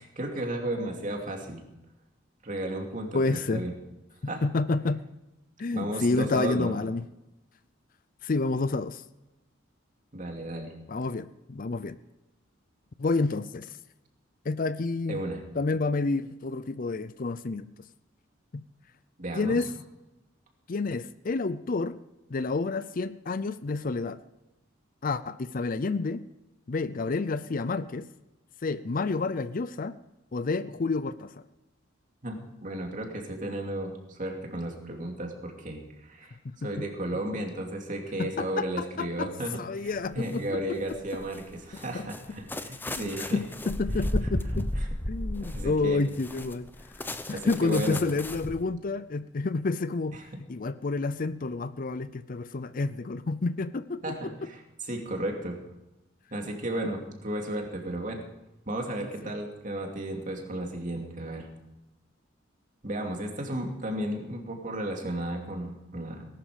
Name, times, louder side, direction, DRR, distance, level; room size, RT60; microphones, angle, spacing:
voice 1, 0.0-1.6 2.4-3.7 4.3-4.4 5.7-6.8 10.1-10.7 15.1-15.4 19.2-19.6 32.2-39.9 40.1-43.4 44.0-44.1 44.8-44.9 45.4-46.0 47.3-48.0 54.0-54.6 54.9-55.6 56.3-58.2 58.7-61.5 62.8-66.2, right 1 dB, 40° right, 2 dB, 2.7 m, -34 dB
voice 2, 3.1-3.6 4.4-5.0 5.6-7.0 8.2-9.0 10.9-12.0 13.0-13.8 14.4-15.2 15.6-17.7 18.5-18.6 19.4-19.7 20.7-22.0 22.3-24.2 25.0-26.2 26.7-28.1 28.6-29.9 30.3-31.3 36.4-36.9 38.2-40.6 41.9-42.1 42.9-44.7 45.1-46.7 47.3-50.2 50.5-54.5 59.2-59.3, left 3 dB, 45° left, 15 dB, 0.5 m, -29 dB
sound 1, 39.9-40.4 40.9-48.6, left 1 dB, 10° left, 0.7 m, -34 dB
18.5 x 11.5 x 5.1 m, 0.97 s
head